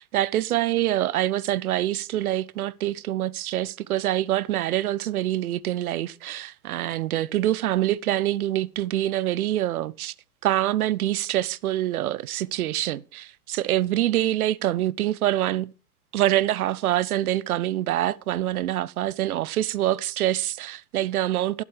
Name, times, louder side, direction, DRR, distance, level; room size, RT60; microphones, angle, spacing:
voice 1, 0.0-10.1 10.4-15.7 16.1-21.6, right 13 dB, 65° right, 0.7 m, -25 dB
12.0 x 11.0 x 4.8 m
hypercardioid pair, 110°, 49 cm